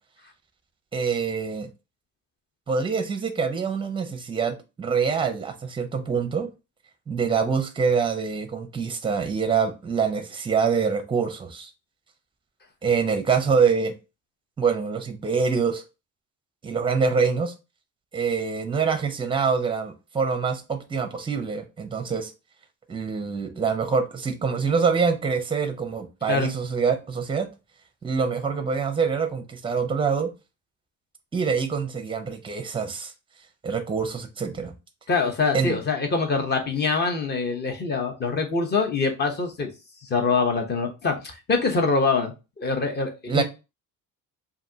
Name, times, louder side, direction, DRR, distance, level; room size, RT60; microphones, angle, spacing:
voice 1, 0.9-1.7 2.7-6.5 7.1-11.7 12.8-13.9 14.6-15.8 16.6-17.5 18.1-22.3 22.9-27.5 28.0-30.3 31.3-33.1 33.6-34.7 35.5-35.8 43.3-43.4, right 5 dB, 15° right, 0.6 m, -25 dB
voice 2, 35.1-39.7 40.0-43.4, left 4 dB, 30° left, 0.9 m, -24 dB
5.1 x 2.6 x 2.7 m
cardioid pair, 150°, 33 cm